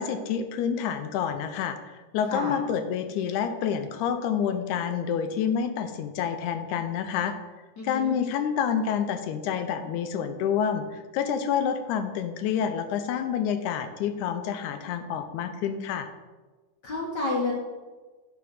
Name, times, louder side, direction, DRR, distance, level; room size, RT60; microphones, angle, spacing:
voice 1, 0.0-7.4 7.8-16.1, left 8 dB, 80° left, 8 dB, 2.0 m, -28 dB
voice 2, 7.8-8.2 16.8-17.5, left 2 dB, 60° left, -2 dB, 1.1 m, -30 dB
9.3 x 3.8 x 6.3 m, 1.3 s
omnidirectional pair, 3.6 m